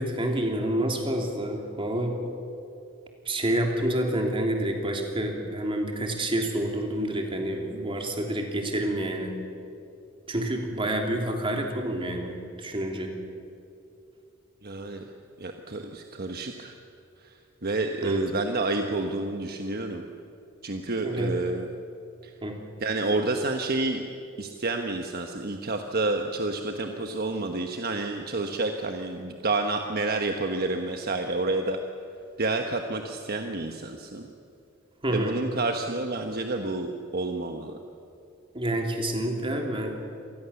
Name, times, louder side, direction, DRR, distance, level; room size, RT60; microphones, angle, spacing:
voice 1, 0.0-2.2 3.2-9.4 10.3-13.2 18.0-18.2 21.0-21.3 22.4-22.6 35.0-35.4 38.5-39.9, right 1 dB, 25° right, 2 dB, 3.1 m, -28 dB
voice 2, 14.6-15.0 15.4-16.8 17.2-20.0 20.6-21.7 22.2-22.3 22.8-24.0 24.4-31.8 32.4-34.3 35.1-37.8, right 2 dB, 50° right, 5 dB, 1.2 m, -29 dB
26.5 x 19.5 x 7.1 m, 2.6 s
head